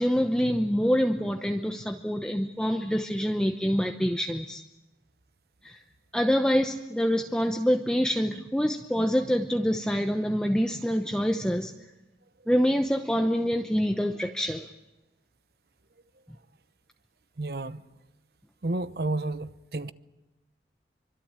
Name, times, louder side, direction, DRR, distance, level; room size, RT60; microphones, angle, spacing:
voice 1, 0.0-4.6 5.6-5.8 6.1-11.7 12.5-14.7, equal, 5° left, 0.8 m, -26 dB
voice 2, 17.4-17.8 18.6-19.9, right 2 dB, 60° right, 0.9 m, -31 dB
25.0 x 25.0 x 8.9 m
head